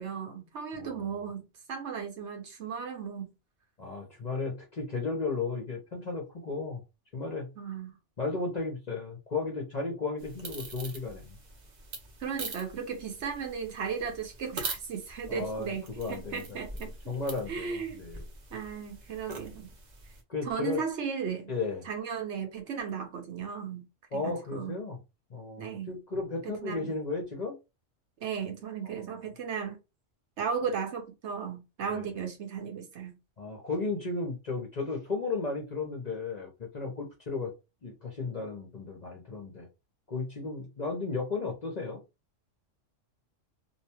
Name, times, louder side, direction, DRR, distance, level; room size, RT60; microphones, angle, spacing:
voice 1, 0.0-3.3 7.6-7.9 12.2-17.1 17.5-18.0 18.5-19.7 20.4-21.5 21.8-23.9 24.1-24.8 25.6-25.9 26.4-26.9 28.2-29.8 30.4-33.2, right 6 dB, 65° right, 1.0 m, -36 dB
voice 2, 0.7-1.1 3.8-6.8 7.1-7.5 8.2-11.4 15.3-18.2 20.3-20.8 21.5-21.8 24.1-25.0 25.3-27.5 28.8-29.0 31.9-32.1 33.4-37.5 37.8-39.7 40.1-42.0, left 3 dB, 45° left, 0.6 m, -34 dB
sound 1, 10.2-20.2, right 3 dB, 45° right, 0.6 m, -43 dB
2.7 x 2.2 x 2.9 m
omnidirectional pair, 1.3 m